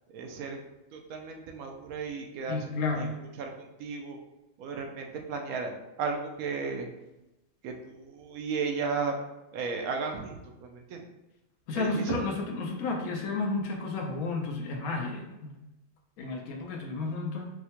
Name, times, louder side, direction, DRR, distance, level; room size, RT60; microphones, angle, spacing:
voice 1, 0.1-0.6 0.9-2.7 3.0-3.1 3.4-4.2 4.6-6.9 7.6-9.2 9.5-11.1 11.7-12.2, right 5 dB, 85° right, 3 dB, 1.1 m, -34 dB
voice 2, 2.5-3.2 11.7-15.5 16.2-17.5, left 3 dB, 85° left, 1 dB, 1.1 m, -32 dB
4.5 x 2.1 x 2.8 m, 0.96 s
omnidirectional pair, 1.5 m